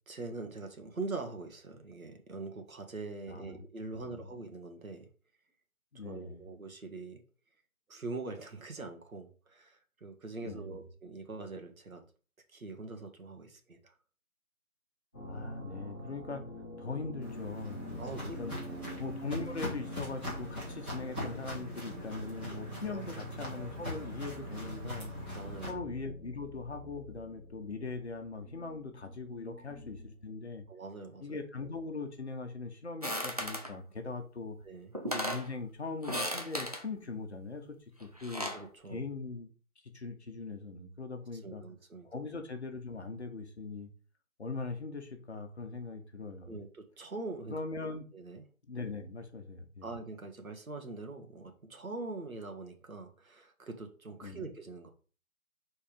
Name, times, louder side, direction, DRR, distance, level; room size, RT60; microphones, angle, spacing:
voice 1, 0.1-5.1 5.9-7.2 7.9-12.0 12.5-13.9 18.0-19.1 22.9-23.0 25.3-25.8 29.5-29.6 30.7-31.4 31.6-31.7 34.6-35.0 38.5-39.0 41.3-42.1 46.5-47.5 48.1-48.4 49.8-54.9, right 3 dB, 75° right, 4 dB, 1.9 m, -43 dB
voice 2, 3.3-3.6 3.9-4.3 5.9-6.5 10.4-10.8 15.2-16.4 16.8-18.5 19.0-25.1 25.7-30.6 31.2-34.6 35.0-38.5 38.9-39.5 39.8-41.6 42.0-43.9 44.4-46.6 47.5-48.0 48.7-49.9 54.2-54.4, left 3 dB, 50° left, 6 dB, 1.3 m, -41 dB
sound 1, 15.1-30.2, left 1 dB, 10° left, 1.1 m, -47 dB
Walk footsteps, 17.2-25.7, equal, 5° right, 1.2 m, -41 dB
sound 2, 33.0-33.7 34.6-34.7 34.9-35.5 36.0-36.8 38.0-38.6, equal, 30° right, 0.7 m, -35 dB
5.2 x 4.3 x 5.1 m, 0.38 s
figure-of-eight pair, 170°, 42 cm